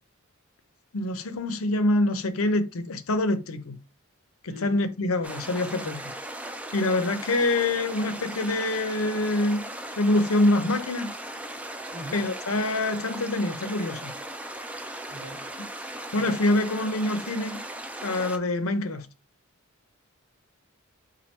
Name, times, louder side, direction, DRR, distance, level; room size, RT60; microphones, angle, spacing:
voice 1, 0.9-3.7 4.4-6.0 6.7-11.1 12.1-14.1 16.1-17.6 18.0-19.1, left 2 dB, 75° left, 0.7 m, -25 dB
voice 2, 4.5-4.9 11.9-12.3 15.1-15.5 16.1-16.4, equal, 70° right, 1.4 m, -42 dB
sound 1, 5.2-18.4, right 1 dB, 5° right, 0.4 m, -38 dB
4.3 x 2.4 x 4.4 m
head